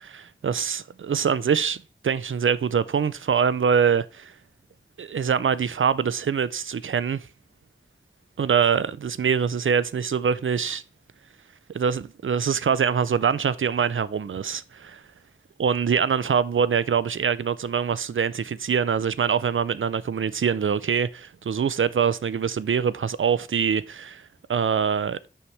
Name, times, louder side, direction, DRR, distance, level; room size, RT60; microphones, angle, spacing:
voice 1, 0.0-4.3 5.0-7.3 8.4-10.8 11.7-15.0 15.6-24.2 24.5-25.2, right 7 dB, 85° right, 0.4 m, -24 dB
7.1 x 5.7 x 3.2 m
wide cardioid pair, 45°, 20 cm